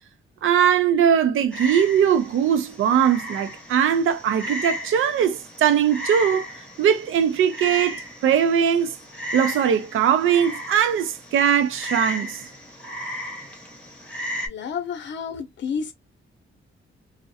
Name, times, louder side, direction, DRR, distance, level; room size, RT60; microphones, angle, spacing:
voice 1, 0.4-6.5 6.8-8.9 9.3-12.4, right 8 dB, 75° right, 0.4 m, -20 dB
Frog, 1.5-14.5, equal, 5° left, 0.8 m, -35 dB
voice 2, 14.5-15.9, left 6 dB, 60° left, 0.7 m, -30 dB
2.4 x 2.0 x 2.6 m
wide cardioid pair, 150°, 21 cm